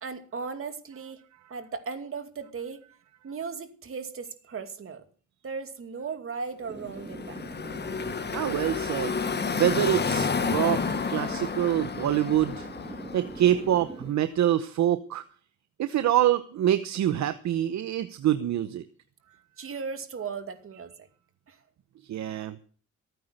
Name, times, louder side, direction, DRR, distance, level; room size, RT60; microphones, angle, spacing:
voice 1, 0.0-1.2 1.5-2.8 3.2-5.0 5.4-7.4 19.6-21.1 21.5-21.6, right 5 dB, 45° right, 7 dB, 2.5 m, -37 dB
sound 1, 6.7-14.1, right 2 dB, 15° right, 2.6 m, -42 dB
Car passing by / Traffic noise roadway noise, 6.9-13.8, left 5 dB, 35° left, 1.5 m, -30 dB
voice 2, 8.3-9.2 9.5-10.8 11.1-12.7 13.1-15.2 15.8-18.8 22.1-22.6, right 11 dB, 65° right, 11 dB, 0.9 m, -25 dB
14.5 x 9.4 x 6.4 m, 0.42 s
cardioid pair, 90°, 30 cm